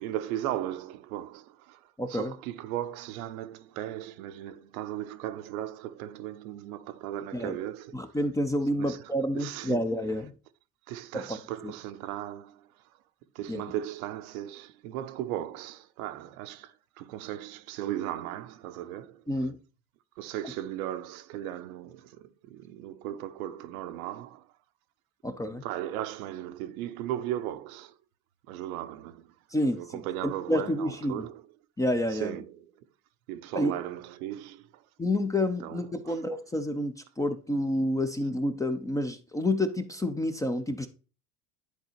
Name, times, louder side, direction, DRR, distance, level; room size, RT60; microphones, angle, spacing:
voice 1, 0.0-8.1 8.8-9.9 10.9-13.0 13.3-19.2 20.2-24.5 25.5-28.0 28.5-29.3 29.7-31.4 32.1-32.8 33.3-34.9 35.6-36.2, right 12 dB, 75° right, 0.7 m, -37 dB
voice 2, 2.0-2.3 7.3-7.6 7.9-10.3 11.1-11.4 11.6-11.7 13.5-13.6 19.3-19.6 25.2-25.6 29.5-30.0 30.5-31.2 31.8-32.4 33.5-33.7 35.0-40.9, left 1 dB, 10° left, 0.4 m, -29 dB
10.5 x 4.0 x 2.9 m
hypercardioid pair, 90°, 43 cm